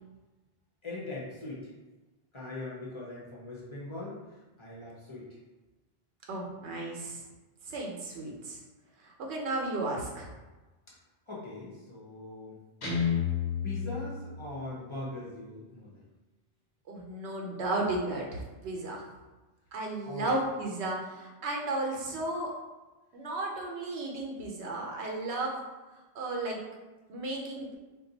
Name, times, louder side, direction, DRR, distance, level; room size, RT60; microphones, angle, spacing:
voice 1, 0.8-1.7 2.3-5.4 10.9-11.0 11.3-12.6 13.6-16.0 20.0-20.3, left 2 dB, 30° left, -6 dB, 0.7 m, -41 dB
voice 2, 6.3-7.2 7.6-8.6 9.0-10.3 16.9-19.0 19.7-22.5 23.1-25.5 26.1-26.6 27.1-27.8, right 2 dB, 90° right, -1 dB, 1.0 m, -34 dB
Guitar, 12.8-14.9, left 7 dB, 80° left, 1.1 m, -31 dB
2.6 x 2.3 x 3.8 m, 1.2 s
omnidirectional pair, 1.1 m